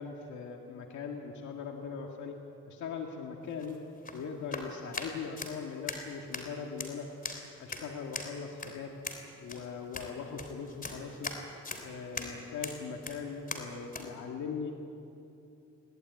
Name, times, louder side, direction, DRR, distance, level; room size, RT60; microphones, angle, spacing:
voice 1, 0.0-2.4 2.7-3.8 4.1-7.1 7.6-8.9 9.4-11.3 11.8-14.7, left 5 dB, 70° left, 1 dB, 2.1 m, -40 dB
sound 1, 3.4-14.1, left 3 dB, 30° left, 3.5 m, -42 dB
21.5 x 17.0 x 9.6 m, 2.7 s
cardioid pair, 90°, 30 cm